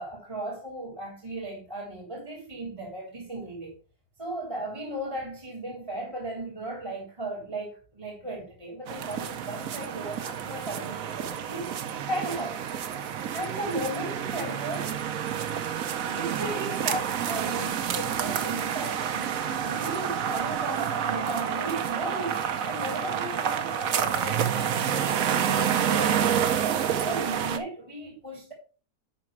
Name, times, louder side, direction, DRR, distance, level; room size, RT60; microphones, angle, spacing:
voice 1, 0.0-3.8 4.2-11.8 12.1-12.6 13.3-15.1 16.1-26.3 26.6-28.5, right 1 dB, 15° right, 3.3 m, -36 dB
sound 1, 8.9-27.6, right 8 dB, 60° right, 1.1 m, -29 dB
11.0 x 4.2 x 4.7 m
omnidirectional pair, 1.9 m